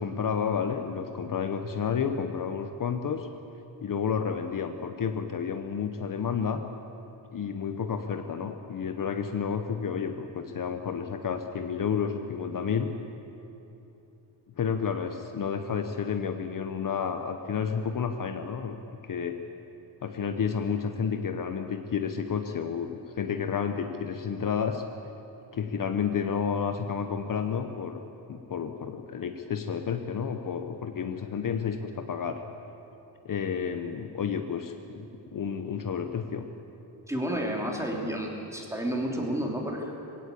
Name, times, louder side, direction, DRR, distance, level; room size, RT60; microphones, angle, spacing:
voice 1, 0.0-3.3 3.8-6.6 7.3-12.9 14.6-19.4 20.0-24.8 25.5-28.0 28.3-32.4 33.2-36.5, left 6 dB, 45° left, 6 dB, 1.1 m, -31 dB
voice 2, 37.1-39.9, equal, 5° right, -1 dB, 3.3 m, -31 dB
21.5 x 17.0 x 8.5 m, 3.0 s
wide cardioid pair, 135°, 43 cm